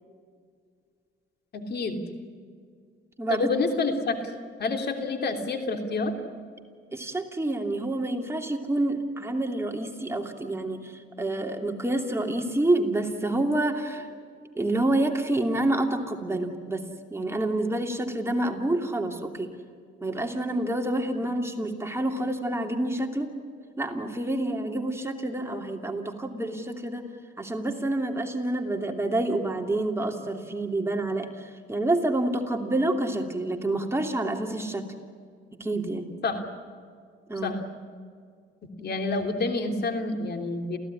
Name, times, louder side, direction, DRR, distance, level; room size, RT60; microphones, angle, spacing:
voice 1, 1.5-2.0 3.3-4.2 4.6-6.1 36.2-36.4 37.4-37.6 38.8-40.8, left 3 dB, 55° left, 5 dB, 3.3 m, -28 dB
voice 2, 3.2-3.5 3.9-4.0 6.9-14.1 14.5-16.8 17.1-19.5 20.0-23.3 23.8-27.0 27.4-34.8 35.6-36.1 37.3-37.6, right 1 dB, 15° right, 3 dB, 2.7 m, -28 dB
29.0 x 16.0 x 9.8 m, 2.1 s
cardioid pair, 90°, 20 cm